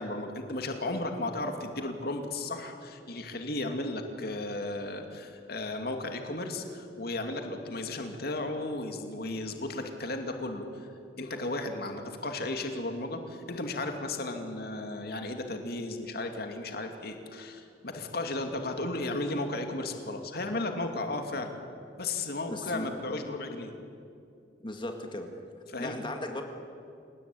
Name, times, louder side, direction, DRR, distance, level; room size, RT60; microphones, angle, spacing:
voice 1, 0.0-10.9 11.2-21.5 22.0-23.7 25.7-26.0, left 2 dB, 60° left, 5 dB, 2.6 m, -34 dB
voice 2, 22.5-22.9 24.6-25.3 25.8-26.4, left 1 dB, 30° left, 4 dB, 2.0 m, -36 dB
28.5 x 18.0 x 9.2 m, 2.5 s
head